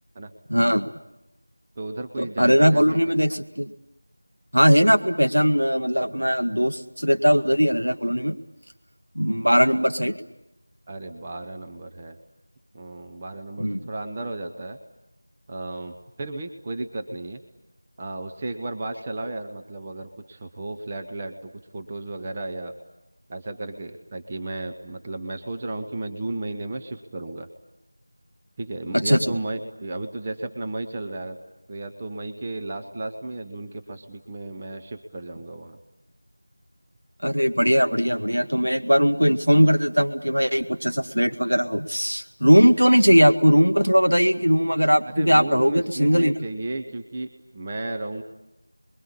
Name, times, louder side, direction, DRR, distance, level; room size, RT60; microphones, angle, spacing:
voice 1, 0.5-0.9 2.2-3.7 4.5-8.3 9.2-10.2 13.6-13.8 28.9-29.3 37.2-46.3, equal, 85° right, 7 dB, 1.9 m, -19 dB
voice 2, 1.8-3.2 10.9-12.2 12.7-14.8 15.5-17.4 18.0-22.7 23.3-27.5 28.6-31.4 31.7-35.8 42.9-43.0 45.0-48.2, right 2 dB, 20° right, 5 dB, 1.0 m, -34 dB
29.0 x 22.5 x 8.6 m, 0.93 s
figure-of-eight pair, 170°, 0 cm